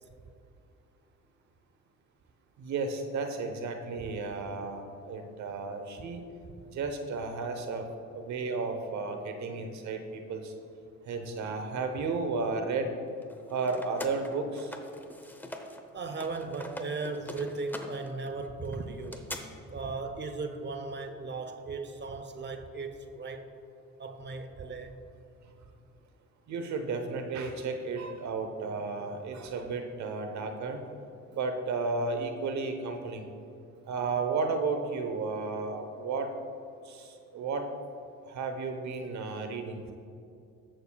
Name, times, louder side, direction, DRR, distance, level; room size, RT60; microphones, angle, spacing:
voice 1, 2.6-6.2 6.7-7.9 8.1-10.5 11.1-12.9 13.5-14.8 26.5-30.8 31.3-33.3 33.8-36.3 36.8-37.7 38.3-39.9, right 4 dB, 60° right, 6 dB, 1.0 m, -33 dB
sound 1, 13.2-15.8 16.1-19.4, left 1 dB, 5° left, 0.8 m, -43 dB
voice 2, 15.9-19.3 19.7-23.5 24.0-25.0, right 3 dB, 35° right, 7 dB, 0.8 m, -37 dB
16.5 x 6.6 x 2.3 m, 2.6 s
supercardioid pair, 80°, 32 cm